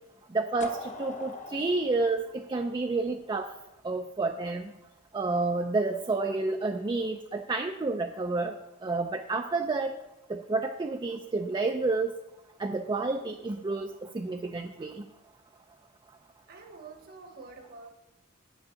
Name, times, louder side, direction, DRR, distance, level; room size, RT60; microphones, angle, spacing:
voice 1, 0.3-3.5 3.8-4.7 5.1-8.5 8.8-9.9 10.3-12.1 12.6-15.0, right 3 dB, 20° right, 4 dB, 0.4 m, -30 dB
sound 1, 0.6-3.4, left 3 dB, 35° left, 0.9 m, -43 dB
voice 2, 16.5-17.9, right 4 dB, 50° right, 4 dB, 1.1 m, -47 dB
8.9 x 6.2 x 6.4 m, 0.93 s
head